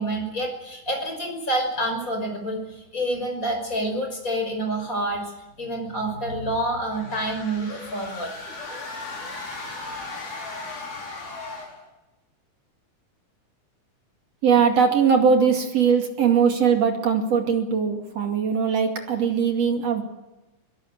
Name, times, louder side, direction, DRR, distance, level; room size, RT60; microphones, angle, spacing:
voice 1, 0.0-2.6 2.9-5.3 5.6-8.3, right 1 dB, 20° left, 3 dB, 5.9 m, -27 dB
sound 1, 6.9-11.9, left 3 dB, 55° left, 6.2 m, -36 dB
voice 2, 14.4-20.0, right 6 dB, 45° right, 3 dB, 3.2 m, -20 dB
23.5 x 18.0 x 8.0 m, 1.0 s
omnidirectional pair, 4.3 m